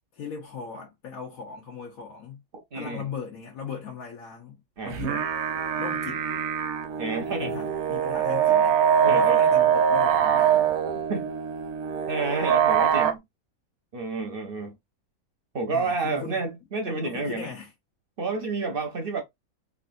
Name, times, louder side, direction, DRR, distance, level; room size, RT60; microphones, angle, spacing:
voice 1, 0.1-2.4 2.7-5.3 5.8-6.2 7.3-8.8 9.0-10.8 15.7-16.4 16.8-17.7, left 6 dB, 75° left, 1.2 m, -38 dB
voice 2, 2.7-3.1 4.8-5.0 7.0-7.5 9.0-9.5 11.1-11.3 12.1-13.2 13.9-14.7 15.5-17.5 18.2-19.2, right 3 dB, 50° right, 0.7 m, -30 dB
sound 1, 4.9-13.1, right 8 dB, 85° right, 1.1 m, -23 dB
3.3 x 2.5 x 2.5 m
omnidirectional pair, 1.5 m